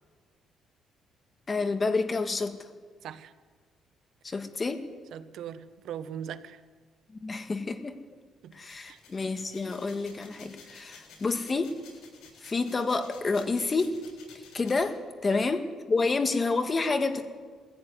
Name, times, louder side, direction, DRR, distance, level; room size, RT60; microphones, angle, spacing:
voice 1, 1.5-2.5 4.2-4.8 7.2-8.0 8.5-11.7 12.4-14.0 14.5-15.0 15.2-17.3, left 3 dB, 25° left, 7 dB, 1.8 m, -28 dB
voice 2, 3.0-3.3 5.1-6.6 8.4-8.6 8.9-9.0 15.3-15.4, right 9 dB, 75° right, 12 dB, 1.1 m, -40 dB
sound 1, 8.5-14.9, left 5 dB, 90° left, 7.1 m, -53 dB
21.0 x 16.0 x 9.6 m, 1.5 s
cardioid pair, 125°, 0 cm